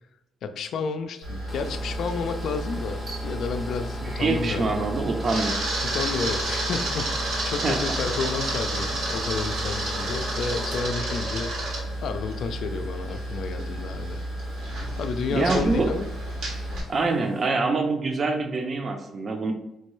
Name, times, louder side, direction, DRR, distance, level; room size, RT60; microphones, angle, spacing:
voice 1, 0.4-4.9 5.8-11.5 12.0-14.2 15.0-16.1 16.6-16.8, left 5 dB, 70° left, 8 dB, 0.3 m, -31 dB
Camera, 1.2-16.8, right 1 dB, 85° right, 1.1 m, -30 dB
sound 1, 1.5-17.5, left 1 dB, 15° left, 0.6 m, -42 dB
voice 2, 4.0-5.6 7.6-7.8 15.3-15.9 16.9-19.5, right 3 dB, 40° right, 4 dB, 0.5 m, -25 dB
4.5 x 2.2 x 3.0 m, 0.93 s
cardioid pair, 90°, 0 cm